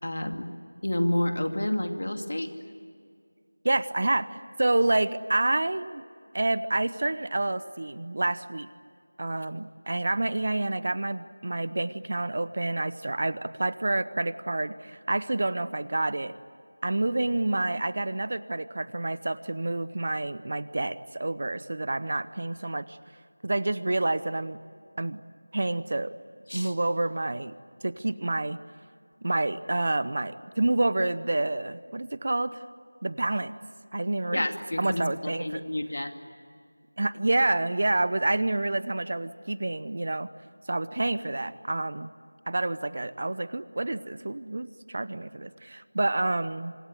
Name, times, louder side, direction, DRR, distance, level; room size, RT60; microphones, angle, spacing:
voice 1, 0.0-0.5 0.8-2.5 26.5-26.7 34.3-36.1, left 1 dB, 55° left, 6 dB, 2.5 m, -29 dB
voice 2, 3.6-6.0 6.3-8.7 9.2-16.4 16.8-23.0 23.4-24.6 25.0-25.2 25.5-26.2 26.5-27.5 27.8-28.6 29.2-32.6 33.0-33.6 33.9-34.4 34.8-35.6 37.0-40.3 40.7-42.1 42.5-46.8, right 2 dB, 40° right, 16 dB, 0.8 m, -28 dB
26.0 x 22.0 x 9.7 m, 2.3 s
figure-of-eight pair, 175°, 0 cm